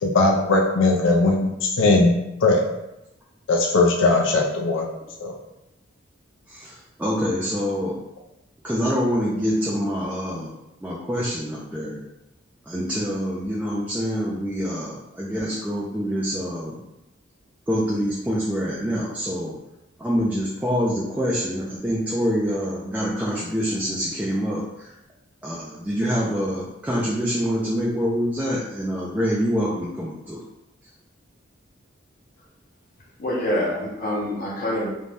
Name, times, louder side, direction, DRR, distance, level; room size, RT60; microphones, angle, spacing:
voice 1, 0.0-2.1 2.4-2.6 3.5-4.9 5.2-5.3, left 2 dB, 80° left, 0 dB, 0.4 m, -19 dB
voice 2, 6.5-8.0 8.6-10.5 10.8-12.0 12.7-16.8 17.7-19.5 20.0-24.9 25.4-30.4, equal, 5° right, -6 dB, 0.3 m, -26 dB
voice 3, 33.2-34.9, left 1 dB, 45° left, -5 dB, 0.8 m, -25 dB
2.6 x 2.2 x 3.2 m, 0.91 s
head